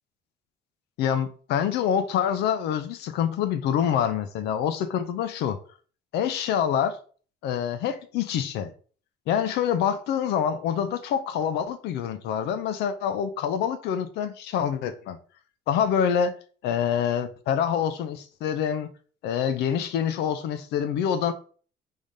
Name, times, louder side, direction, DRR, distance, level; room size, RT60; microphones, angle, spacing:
voice 1, 1.0-5.6 6.1-7.0 7.4-8.7 9.3-15.2 15.7-16.4 16.6-18.9 19.2-21.3, left 8 dB, 80° left, 0.5 m, -26 dB
3.6 x 3.4 x 4.0 m
cardioid pair, 110°, 17 cm